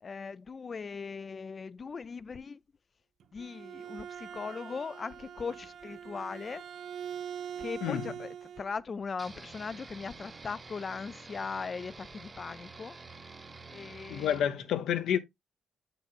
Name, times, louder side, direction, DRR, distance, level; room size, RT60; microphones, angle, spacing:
voice 1, 0.0-2.6 3.3-6.6 7.6-8.3 8.6-13.0 13.7-14.4, left 5 dB, 40° left, 0.4 m, -39 dB
Bowed string instrument, 3.2-8.7, right 8 dB, 65° right, 0.4 m, -43 dB
voice 2, 7.8-8.1 14.1-15.2, left 9 dB, 75° left, 0.8 m, -29 dB
sound 1, 9.2-14.5, right 3 dB, 30° right, 0.9 m, -48 dB
7.0 x 6.1 x 2.5 m
cardioid pair, 90°, 0 cm